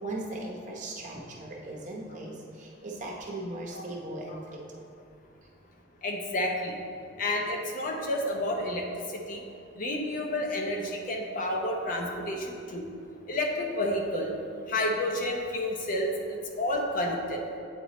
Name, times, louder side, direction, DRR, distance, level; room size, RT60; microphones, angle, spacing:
voice 1, 0.0-4.6, right 2 dB, 40° right, -2 dB, 0.8 m, -38 dB
voice 2, 6.0-6.7 7.2-9.4 9.8-12.9 13.3-14.3 14.7-17.4, left 1 dB, 45° left, 1 dB, 0.6 m, -30 dB
8.1 x 3.1 x 4.1 m, 2.6 s
head